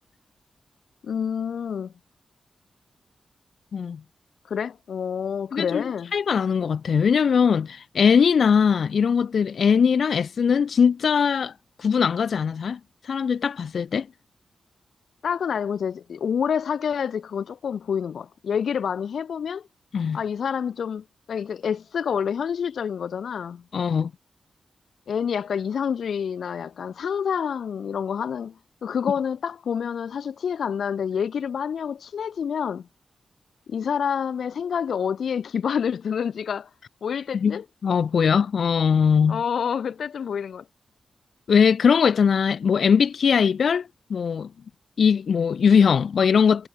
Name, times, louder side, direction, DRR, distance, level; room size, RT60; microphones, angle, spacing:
voice 1, 1.0-1.9 4.5-6.1 15.2-19.7 20.1-23.6 25.1-28.6 28.8-32.9 33.7-36.7 37.0-37.6 39.3-40.6, left 7 dB, 80° left, 4.3 m, -28 dB
voice 2, 5.5-5.8 6.1-11.5 11.8-12.8 13.0-14.1 19.9-20.2 23.7-24.1 37.3-39.4 41.5-44.5 45.0-46.7, left 6 dB, 65° left, 1.2 m, -20 dB
wide cardioid pair, 170°, 0 cm